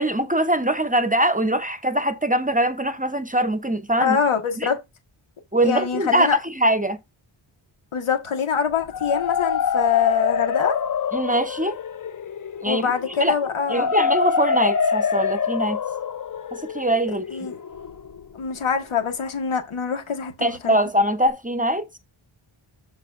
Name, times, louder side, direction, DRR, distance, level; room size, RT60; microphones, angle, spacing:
voice 1, 0.0-4.2 4.6-4.7 5.5-7.0 11.1-11.8 12.6-12.9 13.2-13.4 13.7-15.8 16.5-17.2 20.4-22.0, right 1 dB, 15° right, 0.6 m, -22 dB
voice 2, 4.0-4.8 5.6-6.4 7.9-10.8 12.6-13.9 17.3-17.6 18.3-20.8, left 7 dB, 80° left, 1.6 m, -24 dB
sound 1, 8.7-18.6, left 6 dB, 40° left, 0.6 m, -26 dB
12.0 x 4.1 x 2.5 m
wide cardioid pair, 95°, 49 cm